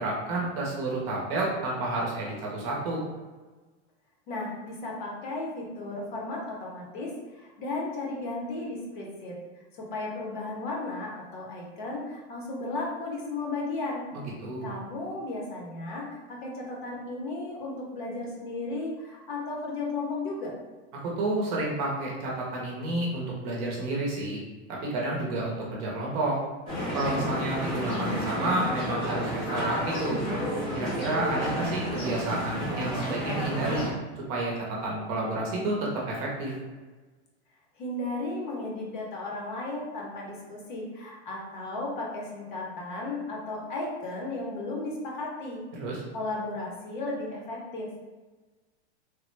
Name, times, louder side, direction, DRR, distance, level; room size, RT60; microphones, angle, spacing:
voice 1, 0.0-3.0 14.4-14.7 21.0-24.4 24.8-26.4 26.9-30.3 30.7-33.9 34.3-36.5 45.7-46.0, right 2 dB, 35° right, -3 dB, 0.7 m, -30 dB
voice 2, 4.3-9.4 9.7-14.0 14.6-20.5 37.8-45.6 46.1-48.1, left 2 dB, 45° left, -2 dB, 0.8 m, -35 dB
sound 1, 26.7-33.9, equal, 15° left, 0.4 m, -31 dB
3.2 x 2.1 x 3.1 m, 1.3 s
supercardioid pair, 170°, 34 cm